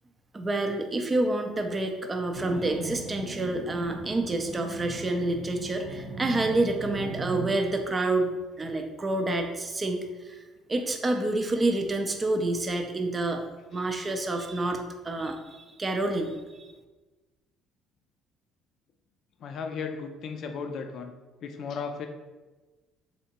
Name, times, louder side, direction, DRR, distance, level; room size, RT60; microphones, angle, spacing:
voice 1, 0.3-10.4 10.7-13.4 13.7-16.7, right 2 dB, 25° right, 4 dB, 0.4 m, -28 dB
sound 1, 2.3-7.5, right 3 dB, 80° right, 1.3 m, -39 dB
voice 2, 19.4-21.1 21.4-22.1, left 5 dB, 60° left, 6 dB, 0.3 m, -35 dB
3.3 x 2.7 x 2.8 m, 1.2 s
supercardioid pair, 75°, 0 cm